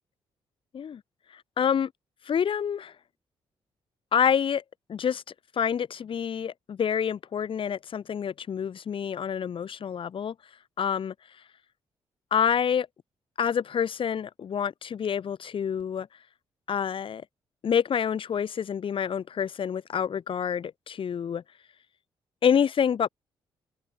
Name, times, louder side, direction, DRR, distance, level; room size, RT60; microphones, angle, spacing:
voice 1, 1.3-1.9 2.3-2.9 4.1-4.6 4.9-5.2 5.5-10.3 10.8-11.1 12.3-12.9 13.4-16.1 16.7-17.2 17.6-21.4 22.4-23.1, left 8 dB, 60° left, 7.4 m, -27 dB
cardioid pair, 75°, 10 cm